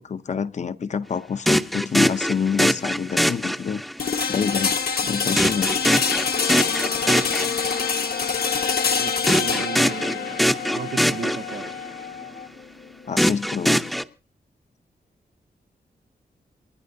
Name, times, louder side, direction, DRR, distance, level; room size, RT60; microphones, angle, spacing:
voice 1, 0.0-3.8 4.3-5.8 13.1-13.8, left 6 dB, 45° left, 0.6 m, -27 dB
sound 1, 1.5-4.1 5.4-8.0 9.3-11.9 13.2-14.0, equal, ahead, 0.6 m, -23 dB
sound 2, 4.0-13.9, left 5 dB, 70° left, 1.3 m, -26 dB
Wind instrument woodwind instrument, 8.1-12.6, left 8 dB, 85° left, 1.6 m, -36 dB
voice 2, 9.0-10.4 10.7-11.7, right 7 dB, 60° right, 0.6 m, -35 dB
28.5 x 10.5 x 2.7 m
wide cardioid pair, 160°, 17 cm